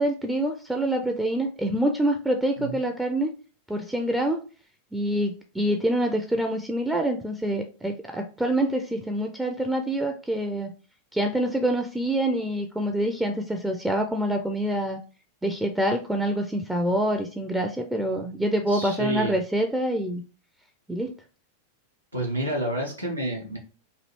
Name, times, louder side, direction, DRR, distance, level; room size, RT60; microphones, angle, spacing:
voice 1, 0.0-3.3 3.7-4.4 4.9-10.7 11.1-15.0 15.4-20.2 20.9-21.1, right 1 dB, 5° right, 3 dB, 0.3 m, -26 dB
voice 2, 18.7-19.3 22.1-23.6, right 1 dB, 85° right, -1 dB, 0.7 m, -29 dB
3.1 x 2.4 x 3.0 m, 0.37 s
figure-of-eight pair, 90°, 0 cm